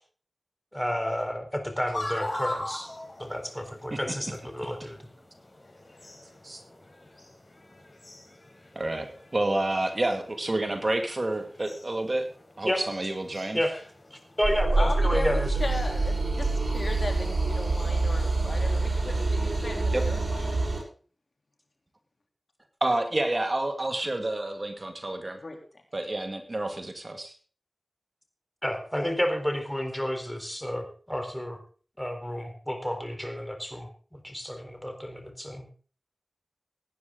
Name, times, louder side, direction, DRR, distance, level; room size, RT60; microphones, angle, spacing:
voice 1, 0.7-2.9 3.2-5.1 12.6-12.9 13.5-13.7 14.1-15.6 28.6-31.6 32.0-35.7, equal, 5° left, 5 dB, 3.9 m, -31 dB
sound 1, 1.9-17.7, left 1 dB, 45° left, 3.8 m, -43 dB
voice 2, 8.8-12.3 12.6-13.6 19.9-20.1 22.8-25.4 25.9-27.3, right 2 dB, 45° right, 5 dB, 2.2 m, -29 dB
sound 2, 14.4-20.8, right 3 dB, 70° right, 6.4 m, -26 dB
voice 3, 14.8-20.6 25.4-25.6, left 2 dB, 60° left, 3 dB, 3.3 m, -37 dB
17.5 x 9.7 x 3.9 m, 0.40 s
cardioid pair, 40°, 0 cm